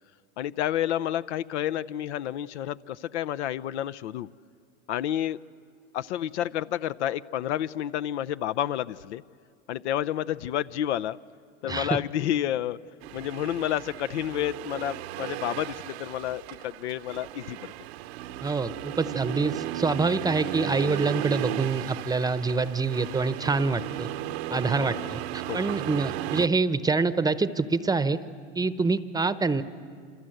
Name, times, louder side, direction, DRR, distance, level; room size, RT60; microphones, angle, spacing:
voice 1, 0.4-4.3 4.9-5.4 5.9-9.2 9.7-11.2 11.6-12.8 13.1-17.6 24.5-24.6 25.4-25.6, left 11 dB, 70° left, 0.7 m, -30 dB
Accelerating revving vroom, 13.0-26.5, right 14 dB, 60° right, 1.0 m, -35 dB
voice 2, 18.4-24.1 24.5-28.2 28.5-29.6, right 4 dB, 10° right, 0.9 m, -26 dB
27.5 x 26.0 x 7.8 m
hypercardioid pair, 105°, 36 cm